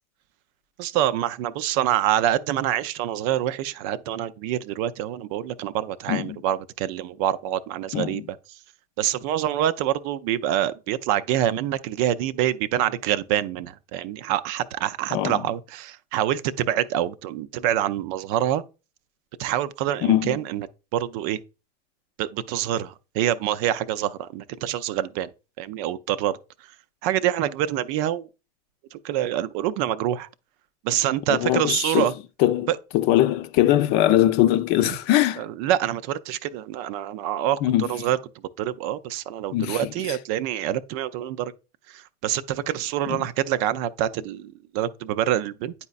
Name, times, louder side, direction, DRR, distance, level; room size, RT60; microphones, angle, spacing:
voice 1, 0.8-8.2 9.0-18.6 19.4-20.7 20.9-21.4 22.2-25.3 25.6-26.4 27.0-28.3 28.9-30.3 30.8-32.1 32.7-32.8 34.8-35.0 35.4-38.2 38.6-41.5 41.9-45.7, right 12 dB, 60° right, 0.5 m, -26 dB
voice 2, 7.9-8.2 15.1-15.4 20.0-20.4 31.3-32.1 32.4-35.4 37.6-37.9 39.5-40.2 43.1-43.3, left 13 dB, 55° left, 0.6 m, -22 dB
9.5 x 4.1 x 2.4 m
hypercardioid pair, 90°, 20 cm